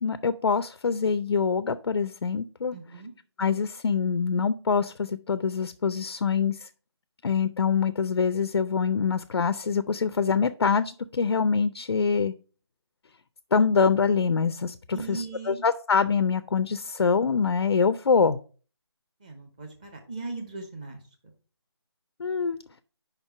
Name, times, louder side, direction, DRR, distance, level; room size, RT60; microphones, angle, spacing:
voice 1, 0.0-2.7 3.4-6.7 7.2-12.3 13.5-18.4 22.2-22.6, left 5 dB, 70° left, 13 dB, 0.4 m, -25 dB
voice 2, 2.7-3.1 14.9-15.6 19.2-21.0, right 3 dB, 15° right, 4 dB, 0.8 m, -38 dB
5.2 x 4.4 x 5.7 m, 0.39 s
figure-of-eight pair, 170°, 14 cm